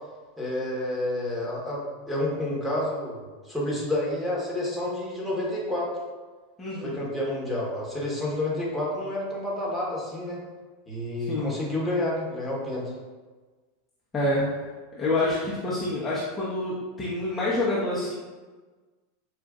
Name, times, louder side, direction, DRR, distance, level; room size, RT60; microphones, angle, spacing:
voice 1, 0.4-5.9 6.8-10.4 10.9-12.9, left 1 dB, ahead, -7 dB, 1.3 m, -29 dB
voice 2, 6.6-7.0 11.2-11.5 14.1-14.4 14.9-18.2, left 2 dB, 15° left, -8 dB, 0.8 m, -27 dB
4.9 x 2.4 x 2.4 m, 1.3 s
hypercardioid pair, 95°, 0 cm